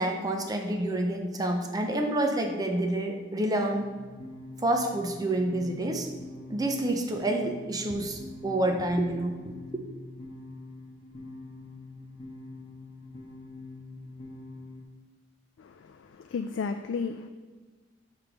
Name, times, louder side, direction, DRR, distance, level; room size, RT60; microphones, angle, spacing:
voice 1, 0.0-3.9 4.6-6.1 6.5-9.6, right 1 dB, 20° right, 3 dB, 0.6 m, -28 dB
sound 1, 3.7-14.8, left 2 dB, 30° left, 1.2 m, -45 dB
voice 2, 15.6-17.3, left 5 dB, 75° left, 7 dB, 0.3 m, -34 dB
7.0 x 3.3 x 5.9 m, 1.4 s
head